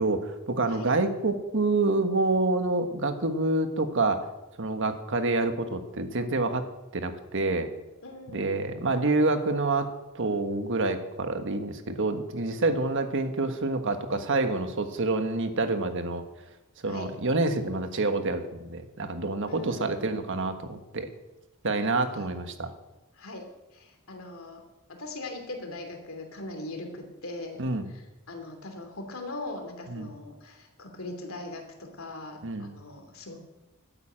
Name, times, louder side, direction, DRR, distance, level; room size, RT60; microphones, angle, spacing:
voice 1, 0.0-4.2 4.6-6.6 6.9-7.7 8.3-16.2 16.8-21.1 21.6-22.7 27.6-27.9 29.9-30.1 32.4-32.7, right 2 dB, 60° right, 7 dB, 1.4 m, -27 dB
voice 2, 8.0-8.5 16.9-17.1 19.5-20.1 22.1-22.2 23.2-23.4 23.7-24.6 25.0-27.6 27.9-33.4, left 2 dB, 70° left, 4 dB, 3.0 m, -40 dB
12.5 x 9.7 x 8.7 m, 1.0 s
head